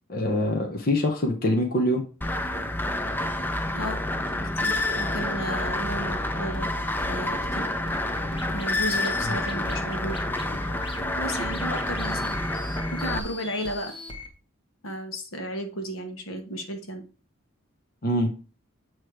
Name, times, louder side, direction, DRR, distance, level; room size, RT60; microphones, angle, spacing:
voice 1, 0.1-2.0 18.0-18.3, left 1 dB, 45° left, 2 dB, 1.0 m, -24 dB
sound 1, 2.2-13.2, left 1 dB, 10° left, 0.4 m, -28 dB
voice 2, 4.3-6.7 7.1-7.7 8.5-10.2 11.2-12.3 12.9-13.9 14.8-17.0, equal, 75° left, 5 dB, 1.4 m, -34 dB
sound 2, 4.7-14.3, left 1 dB, 25° left, 1.2 m, -40 dB
8.3 x 3.2 x 4.7 m, 0.35 s
head